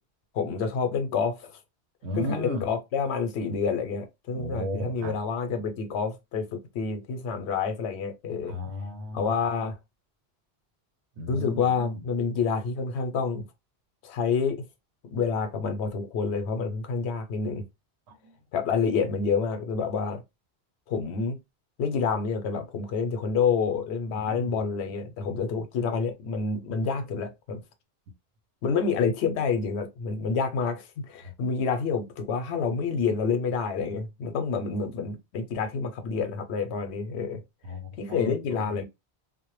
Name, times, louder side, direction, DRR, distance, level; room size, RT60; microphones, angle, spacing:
voice 1, 0.3-1.5 2.2-8.5 9.1-9.8 11.3-13.4 14.0-14.6 15.1-17.6 18.5-20.2 20.9-21.4 21.8-27.6 28.6-37.4 38.0-38.8, left 5 dB, 90° left, 0.8 m, -28 dB
voice 2, 2.0-2.7 4.3-5.2 8.4-9.3 11.2-12.1 18.1-18.4 24.2-24.6 31.2-31.3 37.6-38.8, equal, 90° right, 0.9 m, -35 dB
2.1 x 2.1 x 3.0 m
omnidirectional pair, 1.1 m